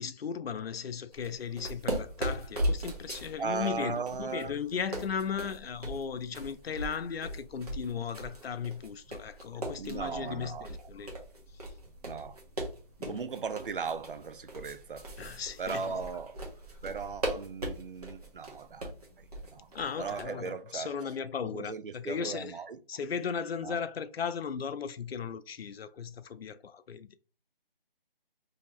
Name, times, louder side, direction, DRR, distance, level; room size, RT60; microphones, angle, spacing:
voice 1, 0.0-11.1 11.5-11.7 13.0-13.3 15.2-16.0 19.7-22.6 22.9-27.2, left 6 dB, 90° left, 0.5 m, -36 dB
sound 1, 1.1-20.2, right 1 dB, 40° right, 1.1 m, -39 dB
voice 2, 3.4-4.5 9.8-10.8 12.0-12.4 13.1-15.1 15.6-16.4 16.8-18.9 19.2-19.7 20.0-20.9 21.5-22.8 23.6-23.8, right 5 dB, 60° right, 0.5 m, -37 dB
3.2 x 2.8 x 3.0 m
figure-of-eight pair, 165°, 30 cm